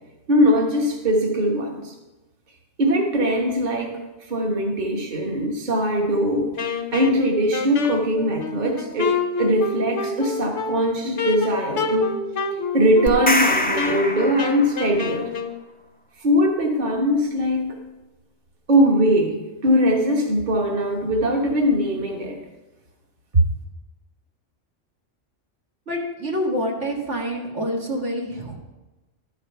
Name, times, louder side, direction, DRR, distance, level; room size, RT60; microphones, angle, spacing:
voice 1, 0.3-1.9 2.8-3.9 4.3-6.5 6.9-9.1 9.4-12.1 12.7-15.3 16.2-17.8 18.7-19.4 19.6-22.4, equal, 40° right, 0 dB, 1.3 m, -21 dB
Wind instrument woodwind instrument, 6.6-15.6, left 5 dB, 75° left, 1.1 m, -28 dB
sound 1, 13.1-15.0, left 1 dB, 15° left, 0.3 m, -24 dB
voice 2, 25.9-28.6, equal, 75° right, -1 dB, 2.1 m, -27 dB
12.5 x 5.0 x 5.5 m, 1.1 s
omnidirectional pair, 1.2 m